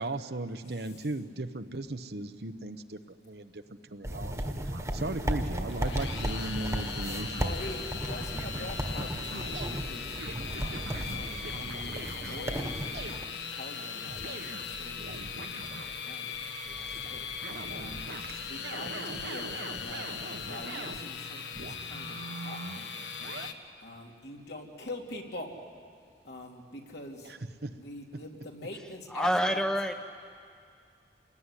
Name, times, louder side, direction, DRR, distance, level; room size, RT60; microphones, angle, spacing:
voice 1, 0.0-4.5 4.9-7.5 16.8-17.1 18.2-18.5 27.6-27.7, right 2 dB, 65° right, 9 dB, 1.0 m, -37 dB
sound 1, 4.0-13.2, equal, 15° right, 1.5 m, -35 dB
sound 2, 4.1-12.6 12.9-13.2 13.8-16.0 16.3-21.0 21.5-23.5, right 2 dB, 85° right, 1.6 m, -43 dB
sound 3, 5.7-23.5, left 6 dB, 90° left, 1.5 m, -39 dB
voice 2, 7.3-10.2 10.5-13.2 13.5-18.1 18.4-20.1 20.4-23.1 23.4-25.6 26.2-27.3 27.7-29.6, left 2 dB, 70° left, 0 dB, 3.2 m, -44 dB
voice 3, 29.1-29.9, equal, 5° left, 6 dB, 0.9 m, -27 dB
29.0 x 20.0 x 9.9 m, 2.3 s
head